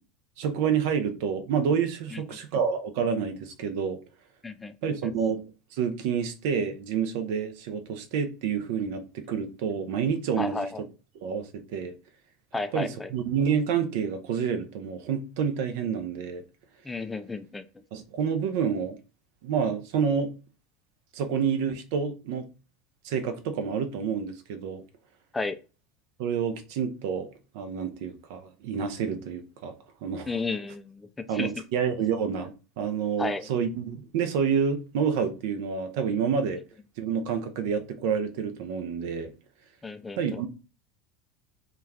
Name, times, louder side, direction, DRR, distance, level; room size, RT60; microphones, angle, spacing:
voice 1, 0.4-4.0 4.8-5.4 5.7-10.7 11.2-12.0 12.7-16.4 17.9-19.0 19.4-20.3 21.1-22.5 23.0-24.8 26.2-27.3 27.5-29.7 30.0-30.3 31.3-36.6 37.0-39.3 40.2-40.5, right 7 dB, 65° right, 0.5 m, -28 dB
voice 2, 4.4-4.7 5.0-5.1 10.4-10.8 12.5-13.1 16.8-17.6 25.3-25.6 30.3-31.5 33.2-33.5 39.8-40.5, left 3 dB, 15° left, 0.3 m, -33 dB
2.3 x 2.2 x 3.2 m
hypercardioid pair, 80°, 0 cm